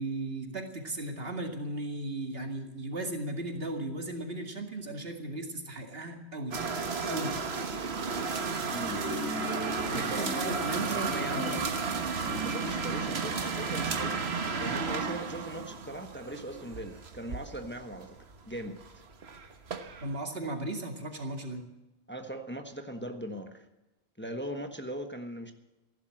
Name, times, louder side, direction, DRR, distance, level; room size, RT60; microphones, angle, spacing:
voice 1, 0.0-6.6 7.1-7.4 9.9-11.7 20.0-21.7, right 2 dB, 70° right, 4 dB, 2.4 m, -36 dB
sound 1, 6.5-20.1, right 4 dB, 90° right, 1.6 m, -33 dB
voice 2, 8.7-9.1 9.9-11.7 12.4-18.2 18.5-19.0 22.1-23.6 24.2-25.5, right 1 dB, 10° left, 5 dB, 1.2 m, -40 dB
sound 2, 8.9-14.5, left 1 dB, 5° right, 2.4 m, -41 dB
15.0 x 12.0 x 7.7 m, 0.99 s
omnidirectional pair, 1.0 m